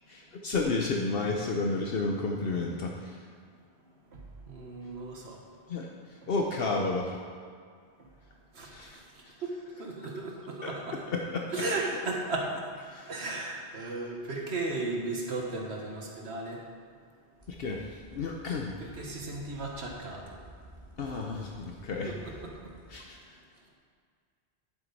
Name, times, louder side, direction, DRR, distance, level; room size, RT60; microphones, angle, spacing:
voice 1, 0.1-3.2 5.7-7.2 8.6-9.0 10.6-10.7 11.1-12.0 12.9-13.1 17.5-18.7 21.0-22.1 22.9-23.4, left 3 dB, 65° left, 1 dB, 1.0 m, -32 dB
voice 2, 4.1-5.4 8.0-8.1 8.5-9.5 9.8-11.0 11.5-12.7 13.0-16.6 18.8-20.3 22.0-22.7, right 2 dB, 80° right, -1 dB, 1.6 m, -36 dB
sound 1, 17.4-23.0, equal, 30° right, 1.8 m, -52 dB
11.0 x 7.6 x 4.0 m, 2.1 s
omnidirectional pair, 1.1 m